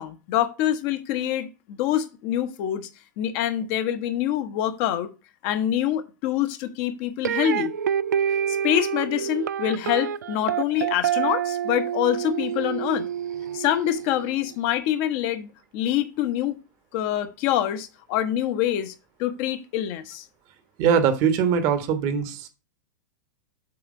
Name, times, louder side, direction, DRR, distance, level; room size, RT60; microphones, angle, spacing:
voice 1, 0.0-2.9 3.2-5.1 5.4-7.7 8.5-13.0 13.5-16.6 16.9-18.9 19.2-20.2, left 11 dB, 40° left, 0.9 m, -25 dB
sound 1, 7.3-14.3, right 9 dB, 65° right, 0.4 m, -27 dB
voice 2, 20.8-22.5, right 7 dB, 40° right, 1.1 m, -21 dB
7.7 x 3.2 x 5.0 m
figure-of-eight pair, 95°, 10 cm